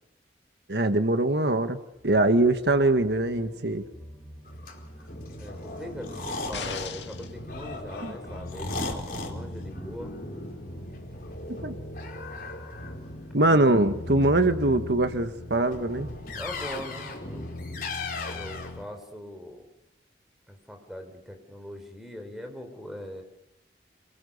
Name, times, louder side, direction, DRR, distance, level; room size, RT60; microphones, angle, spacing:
voice 1, 0.7-1.8 2.0-3.8 8.0-8.1 11.5-11.8 13.3-16.1, right 2 dB, 65° right, 8 dB, 1.4 m, -23 dB
sound 1, 1.9-16.7, equal, 35° left, 6.0 m, -48 dB
sound 2, 4.5-18.8, left 2 dB, 50° left, 4.3 m, -37 dB
voice 2, 5.0-10.2 16.3-17.5 18.3-19.7 20.5-23.2, left 1 dB, ahead, 4 dB, 4.2 m, -41 dB
sound 3, 6.5-7.3 8.9-9.0, left 5 dB, 75° left, 2.2 m, -36 dB
27.0 x 21.5 x 7.0 m, 0.86 s
head